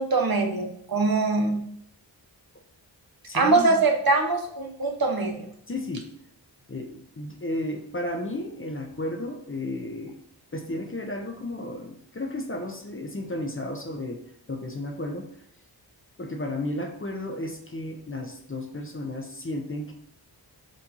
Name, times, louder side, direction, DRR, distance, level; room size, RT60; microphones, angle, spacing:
voice 1, 0.0-1.6 3.3-5.4, right 3 dB, 50° right, 3 dB, 0.9 m, -23 dB
voice 2, 3.3-3.9 5.7-6.1 6.7-10.2 10.5-14.2 14.5-15.2 16.2-19.9, left 1 dB, 30° left, 4 dB, 0.7 m, -33 dB
4.5 x 2.6 x 4.1 m, 0.67 s
cardioid pair, 40°, 45 cm